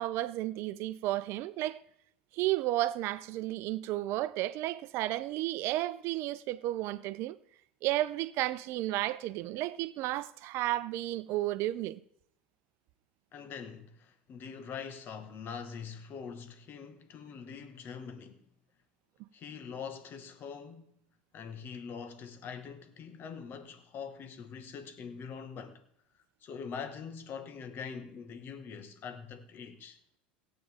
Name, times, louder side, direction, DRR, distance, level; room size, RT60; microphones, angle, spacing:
voice 1, 0.0-1.8 2.3-7.4 7.8-12.0, right 15 dB, 55° right, 0.7 m, -32 dB
voice 2, 13.3-18.4 19.3-21.0 21.3-25.8 26.4-30.0, left 6 dB, 40° left, 1.8 m, -43 dB
17.5 x 8.6 x 3.7 m
hypercardioid pair, 85°, 5 cm